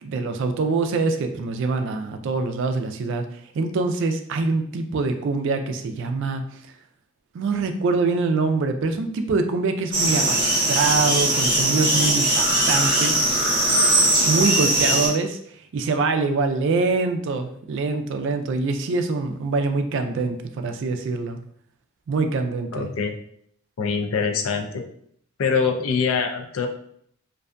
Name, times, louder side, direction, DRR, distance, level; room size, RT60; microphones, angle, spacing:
voice 1, 0.0-3.2 3.5-6.4 7.3-13.2 14.2-15.4 15.7-21.4 22.1-22.9, right 3 dB, 60° right, 7 dB, 0.3 m, -24 dB
sound 1, 9.9-15.1, right 1 dB, 20° right, 0.8 m, -20 dB
voice 2, 22.7-23.1 23.8-24.8 25.4-26.7, left 5 dB, 75° left, 4 dB, 0.4 m, -24 dB
2.5 x 2.2 x 2.5 m, 0.66 s
head